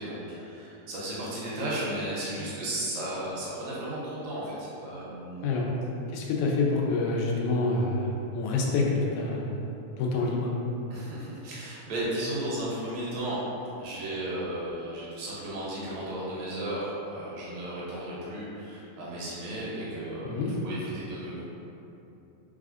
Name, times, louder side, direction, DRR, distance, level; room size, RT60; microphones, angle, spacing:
voice 1, 0.0-5.5 10.9-13.4 13.8-21.4, right 1 dB, 70° right, -7 dB, 2.2 m, -34 dB
voice 2, 6.1-9.6 10.0-10.5 20.2-20.5, left 3 dB, 90° left, -1 dB, 2.1 m, -27 dB
4.1 x 4.1 x 2.5 m, 2.9 s
omnidirectional pair, 3.4 m